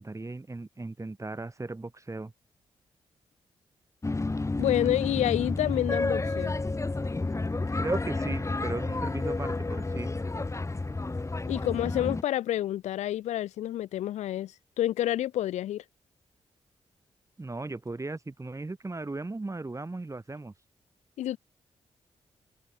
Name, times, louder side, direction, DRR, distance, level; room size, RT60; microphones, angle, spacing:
voice 1, 0.0-2.3 7.8-10.1 17.4-20.5, right 2 dB, 25° right, 4.0 m, -36 dB
sound 1, 4.0-12.2, left 3 dB, 25° left, 1.9 m, -30 dB
voice 2, 4.6-6.5 11.5-15.8 21.2-21.4, left 13 dB, 85° left, 0.9 m, -28 dB
supercardioid pair, 50°, 12 cm